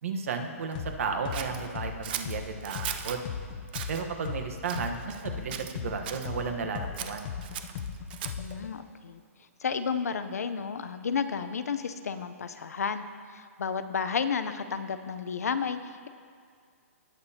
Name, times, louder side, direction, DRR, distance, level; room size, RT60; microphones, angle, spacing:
voice 1, 0.0-3.2 3.9-7.3, right 5 dB, 65° right, 5 dB, 1.1 m, -33 dB
sound 1, 0.7-0.9 1.2-4.9 5.2-8.7, left 8 dB, 35° left, 0.7 m, -36 dB
Scissors, 1.3-3.2 3.7-4.0 4.6-5.3 5.5-6.3 6.9-8.5, right 10 dB, 40° right, 0.5 m, -38 dB
voice 2, 8.4-9.2 9.6-13.0 13.3-16.1, left 6 dB, 90° left, 11 dB, 0.6 m, -32 dB
18.5 x 6.8 x 2.8 m, 2.1 s
hypercardioid pair, 150°, 8 cm